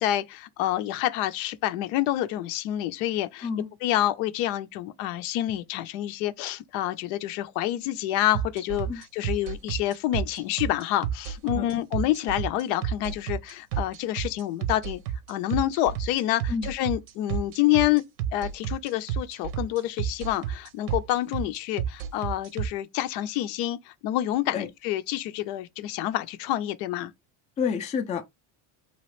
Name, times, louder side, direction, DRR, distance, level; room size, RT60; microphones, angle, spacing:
voice 1, 0.0-3.5 3.8-15.0 15.3-18.0 18.3-27.1, left 14 dB, 85° left, 0.6 m, -28 dB
sound 1, 8.3-22.7, right 9 dB, 85° right, 0.7 m, -30 dB
voice 2, 27.6-28.2, left 6 dB, 20° left, 0.3 m, -28 dB
3.0 x 2.4 x 3.1 m
cardioid pair, 125°, 47 cm